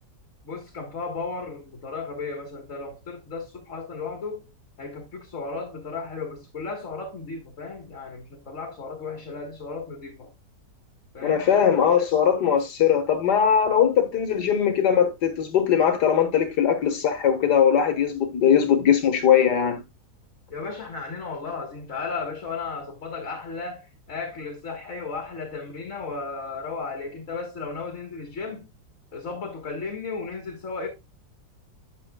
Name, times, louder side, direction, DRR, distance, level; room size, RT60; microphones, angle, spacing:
voice 1, 0.4-4.5 4.8-10.3 11.1-11.5 20.5-28.7 29.1-30.9, left 4 dB, 45° left, 1.9 m, -34 dB
voice 2, 11.2-19.8, left 8 dB, 70° left, 2.0 m, -20 dB
9.7 x 7.1 x 2.3 m
omnidirectional pair, 1.9 m